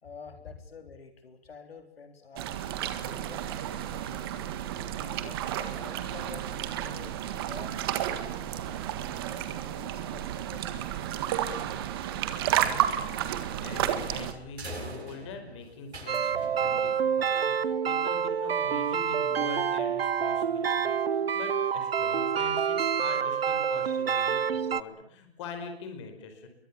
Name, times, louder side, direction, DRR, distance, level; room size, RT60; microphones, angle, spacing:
voice 1, 0.0-2.5 3.1-4.4 4.9-8.9 9.3-11.1, left 5 dB, 70° left, 6 dB, 3.8 m, -50 dB
sound 1, 2.3-14.3, right 11 dB, 25° right, 1.8 m, -32 dB
voice 2, 12.4-12.9 13.6-24.4 24.7-26.5, left 4 dB, 30° left, 6 dB, 5.1 m, -43 dB
sound 2, 12.9-17.4, right 3 dB, 90° right, 7.4 m, -45 dB
sound 3, 16.1-24.8, right 7 dB, 65° right, 1.2 m, -27 dB
28.0 x 23.0 x 7.1 m, 0.68 s
hypercardioid pair, 165°, 31 cm